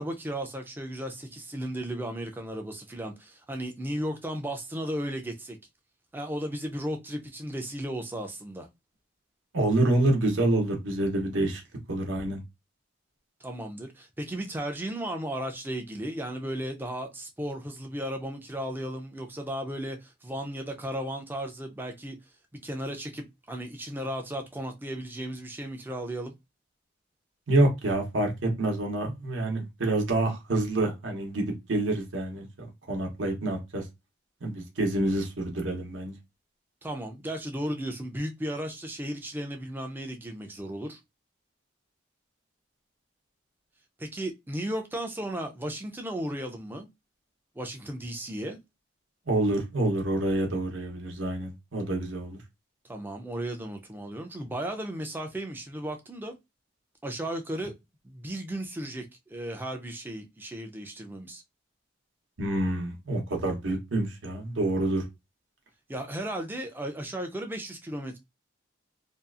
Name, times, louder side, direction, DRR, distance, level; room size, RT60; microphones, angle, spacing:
voice 1, 0.0-5.6 6.1-8.7 13.4-22.2 22.5-26.3 36.8-41.0 44.0-46.9 47.6-48.6 52.9-56.4 57.0-57.7 58.0-61.4 65.9-68.2, right 1 dB, 10° right, 0.3 m, -35 dB
voice 2, 9.5-11.6 11.9-12.4 27.5-33.8 34.4-36.1 49.3-52.4 62.4-65.0, right 2 dB, 70° right, 0.8 m, -27 dB
2.6 x 2.3 x 2.4 m
head